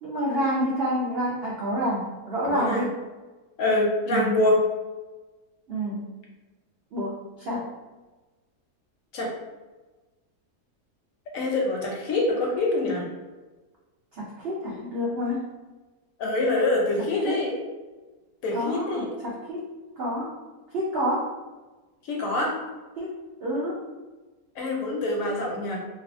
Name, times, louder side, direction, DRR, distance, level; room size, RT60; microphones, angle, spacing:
voice 1, 0.0-2.9 4.1-4.4 5.7-6.0 6.9-7.7 14.1-15.5 17.0-17.4 18.5-19.7 20.0-20.3 20.7-21.3 23.0-23.1 23.4-23.8, equal, 80° right, -5 dB, 0.5 m, -28 dB
voice 2, 2.4-2.8 3.6-4.6 9.1-9.3 11.3-13.0 16.2-17.6 18.4-19.1 22.1-22.5 24.6-25.8, left 2 dB, 70° left, -1 dB, 0.9 m, -25 dB
2.6 x 2.3 x 2.4 m, 1.2 s
omnidirectional pair, 1.6 m